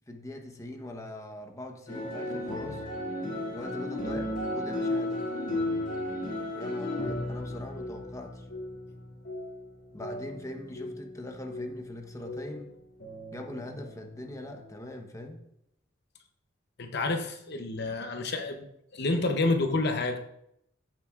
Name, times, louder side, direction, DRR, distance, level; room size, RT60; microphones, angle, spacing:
voice 1, 0.0-2.8 3.5-4.3 4.5-5.2 6.5-8.5 9.9-12.7 13.3-15.4, left 1 dB, 15° left, 3 dB, 1.0 m, -41 dB
sound 1, 1.9-12.0 12.2-12.7 13.0-14.8, left 1 dB, 80° left, 2.7 m, -35 dB
voice 2, 16.8-18.7 18.9-20.2, left 2 dB, 60° left, 5 dB, 0.8 m, -29 dB
14.0 x 7.6 x 2.5 m, 0.78 s
head